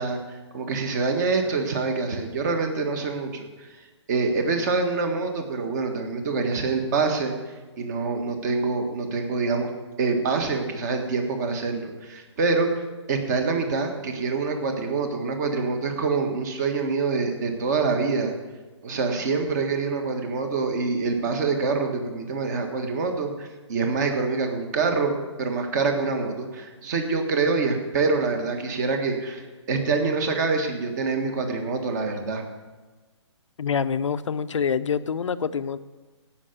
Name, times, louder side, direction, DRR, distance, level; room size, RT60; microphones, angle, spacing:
voice 1, 0.0-3.7 4.1-7.3 7.8-9.7 10.0-12.7 13.1-18.3 18.8-32.4, right 4 dB, 35° right, 5 dB, 1.6 m, -26 dB
voice 2, 33.6-35.8, left 6 dB, 80° left, 13 dB, 0.6 m, -26 dB
16.0 x 5.9 x 6.8 m, 1.3 s
hypercardioid pair, 160°, 16 cm